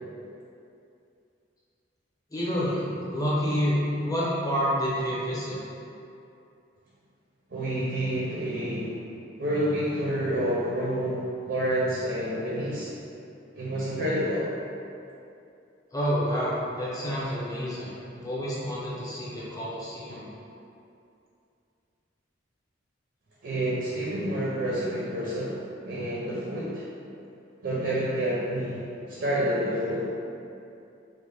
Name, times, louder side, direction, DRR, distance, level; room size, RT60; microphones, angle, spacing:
voice 1, 2.3-5.6 15.9-20.2, equal, 20° left, -8 dB, 0.6 m, -28 dB
voice 2, 7.5-9.0 9.4-12.9 13.5-14.5 23.4-25.6 25.8-26.8 27.6-30.1, right 1 dB, 60° right, -7 dB, 0.5 m, -28 dB
3.1 x 2.1 x 3.3 m, 2.6 s
head